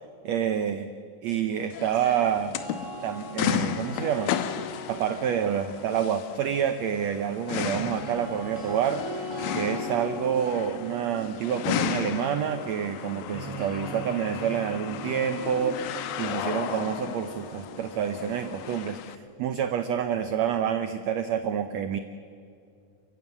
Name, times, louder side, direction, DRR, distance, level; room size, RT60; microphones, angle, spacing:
voice 1, 0.2-0.9 1.2-2.5 3.0-15.8 16.2-22.0, right 8 dB, 80° right, 10 dB, 1.5 m, -28 dB
sound 1, 1.7-19.2, left 10 dB, 80° left, 2.6 m, -34 dB
sound 2, 2.3-6.5 7.7-19.6, right 1 dB, 5° right, 4.6 m, -41 dB
30.0 x 15.0 x 8.2 m, 2.4 s
omnidirectional pair, 4.1 m